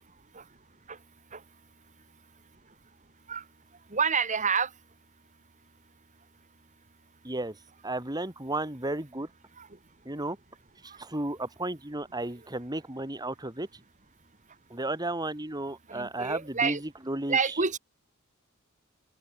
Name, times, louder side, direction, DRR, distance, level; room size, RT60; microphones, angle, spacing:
voice 1, 3.9-4.7 9.6-9.7 10.9-11.0 15.9-16.8 17.3-17.8, right 5 dB, 35° right, 2.4 m, -28 dB
voice 2, 7.2-7.6 7.8-9.3 10.0-10.4 10.8-13.8 14.7-17.6, right 2 dB, 20° right, 2.7 m, -34 dB
open air
head